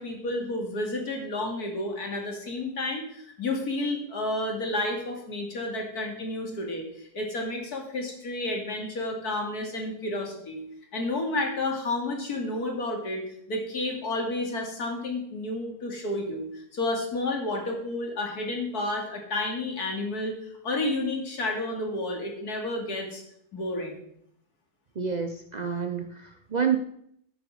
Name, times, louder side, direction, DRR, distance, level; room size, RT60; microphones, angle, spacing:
voice 1, 0.0-10.6 10.9-13.2 13.5-20.4 20.6-23.2 23.5-24.0, left 2 dB, 60° left, 2 dB, 3.0 m, -31 dB
voice 2, 25.0-26.8, right 7 dB, 75° right, 6 dB, 0.4 m, -28 dB
13.0 x 10.5 x 4.9 m, 0.72 s
omnidirectional pair, 1.9 m